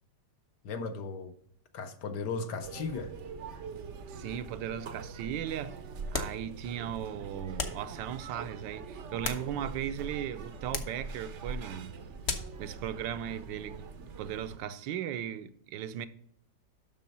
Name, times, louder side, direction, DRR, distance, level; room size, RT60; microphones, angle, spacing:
voice 1, 0.6-1.3 1.7-3.2, left 4 dB, 70° left, 1.3 m, -36 dB
sound 1, 2.6-14.6, right 4 dB, 60° right, 0.7 m, -43 dB
voice 2, 4.1-5.8 6.1-11.9 12.6-13.8 14.2-16.1, right 10 dB, 80° right, 1.3 m, -37 dB
sound 2, 6.1-6.5 7.6-7.9 9.0-9.9 10.7-11.0 12.2-12.6, left 5 dB, 50° left, 0.9 m, -36 dB
7.4 x 6.2 x 5.3 m
omnidirectional pair, 2.0 m